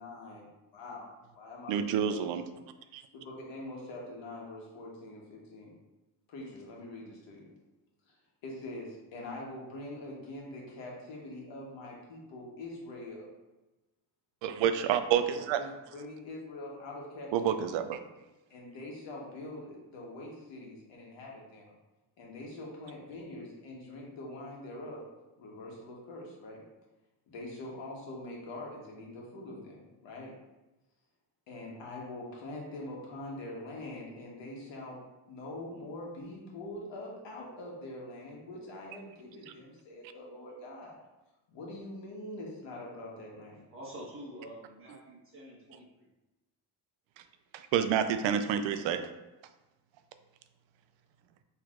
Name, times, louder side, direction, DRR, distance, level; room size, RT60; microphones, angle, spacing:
voice 1, 0.0-0.4 0.7-1.1 1.4-2.3 3.1-5.7 6.3-7.5 8.1-8.2 8.4-13.3 15.2-17.6 18.5-21.7 22.2-26.6 27.3-30.3 31.5-35.0 35.3-40.9 41.5-43.6, left 1 dB, 70° left, -2 dB, 1.3 m, -44 dB
voice 2, 1.7-2.4 2.9-3.0 14.4-15.6 17.3-18.0 47.5-49.1, right 9 dB, 75° right, 9 dB, 0.5 m, -28 dB
voice 3, 43.7-46.1, right 1 dB, 30° right, -4 dB, 1.2 m, -47 dB
6.1 x 3.2 x 2.4 m, 1.0 s
cardioid pair, 155°, 45 cm